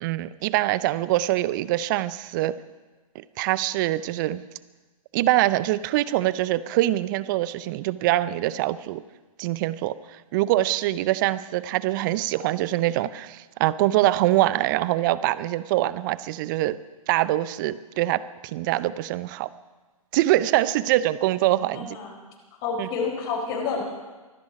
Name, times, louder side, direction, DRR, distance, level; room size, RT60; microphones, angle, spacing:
voice 1, 0.0-2.5 3.1-4.4 5.1-9.0 9.4-16.8 17.1-19.5 20.1-22.0 22.8-22.9, right 15 dB, 35° right, 17 dB, 0.6 m, -24 dB
voice 2, 21.7-22.2 22.6-23.8, left 5 dB, 40° left, -1 dB, 4.4 m, -29 dB
24.0 x 10.5 x 5.0 m, 1.2 s
figure-of-eight pair, 120°, 18 cm